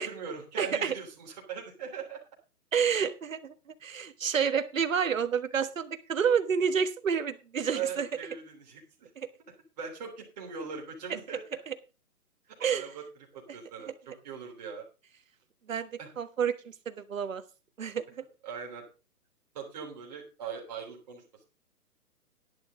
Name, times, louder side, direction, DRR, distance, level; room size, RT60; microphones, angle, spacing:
voice 1, 0.0-2.2 7.7-9.1 9.8-11.4 12.7-13.1 13.5-14.9 16.0-16.1 18.4-18.8 19.5-21.2, right 6 dB, 25° right, -1 dB, 3.2 m, -40 dB
voice 2, 0.6-0.9 2.7-3.5 3.8-8.1 9.2-9.3 11.7-11.8 12.6-12.9 15.7-15.9 16.2-16.5 16.8-17.4 17.8-18.0, right 7 dB, 55° right, 10 dB, 1.4 m, -29 dB
11.0 x 11.0 x 3.8 m, 0.31 s
hypercardioid pair, 175°, 46 cm